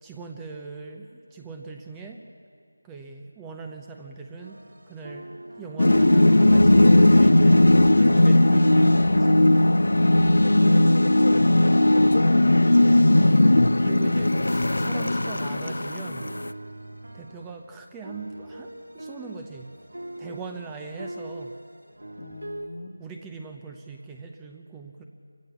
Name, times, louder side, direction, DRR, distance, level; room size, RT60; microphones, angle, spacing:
voice 1, 0.0-2.2 2.8-9.6 12.2-12.6 13.8-16.3 17.1-19.7 20.2-21.5 23.0-25.0, right 4 dB, 10° right, 3 dB, 0.7 m, -41 dB
sound 1, 4.4-10.2 10.5-22.7, right 1 dB, 90° right, 2.1 m, -42 dB
sound 2, 5.8-16.5, left 1 dB, 70° left, 0.6 m, -17 dB
voice 2, 10.1-13.2 22.2-23.0, left 2 dB, 50° left, 7 dB, 1.4 m, -35 dB
25.5 x 15.5 x 7.2 m, 2.4 s
figure-of-eight pair, 165°, 0 cm